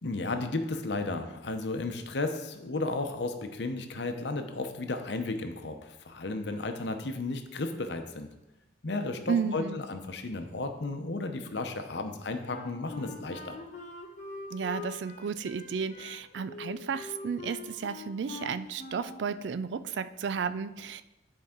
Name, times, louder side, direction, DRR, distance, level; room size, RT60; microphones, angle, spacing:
voice 1, 0.0-8.3 8.8-13.6, left 2 dB, 70° left, 6 dB, 0.8 m, -34 dB
voice 2, 9.3-9.8 14.5-21.0, right 6 dB, 75° right, 13 dB, 0.4 m, -33 dB
Wind instrument woodwind instrument, 12.5-19.3, left 3 dB, 40° left, 1.0 m, -43 dB
10.5 x 4.7 x 3.7 m, 0.98 s
head